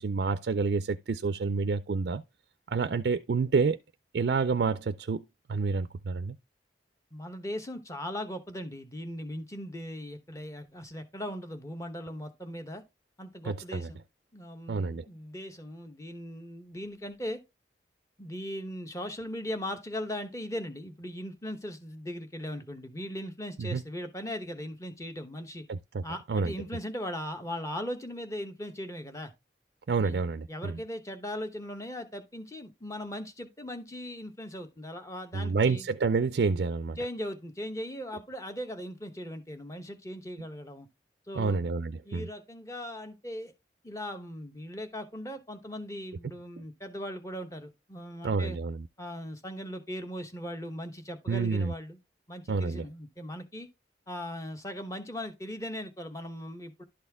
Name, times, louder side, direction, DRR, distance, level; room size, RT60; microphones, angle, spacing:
voice 1, 0.0-2.2 2.7-3.8 4.1-6.4 13.4-13.9 14.7-15.1 23.6-23.8 25.7-26.0 26.3-26.5 29.9-30.8 35.3-37.0 41.4-42.3 48.2-48.8 51.3-51.7 52.5-52.9, right 4 dB, 65° right, 0.4 m, -28 dB
voice 2, 7.1-12.8 13.2-14.0 14.3-17.4 18.2-25.6 26.0-29.3 30.0-30.2 30.5-35.9 37.0-40.9 41.3-41.6 42.0-43.5 43.8-48.6 49.0-52.0 52.3-53.7 54.1-56.8, equal, 20° left, 1.0 m, -39 dB
11.5 x 4.3 x 3.5 m
head